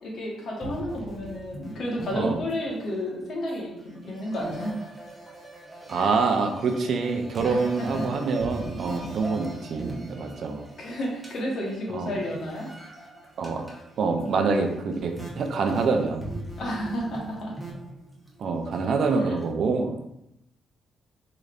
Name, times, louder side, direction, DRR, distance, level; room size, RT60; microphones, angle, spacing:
voice 1, 0.0-4.9 5.9-6.0 7.4-8.1 10.8-12.7 16.6-17.5, equal, 60° left, -2 dB, 1.2 m, -31 dB
sound 1, 0.6-2.9 3.2-19.4, right 1 dB, 10° right, 0.9 m, -41 dB
voice 2, 5.9-10.6 11.9-12.1 13.4-13.6 14.0-16.2 18.4-20.0, right 4 dB, 60° right, 4 dB, 0.5 m, -26 dB
3.9 x 3.2 x 2.5 m, 0.83 s
cardioid pair, 90°, 0 cm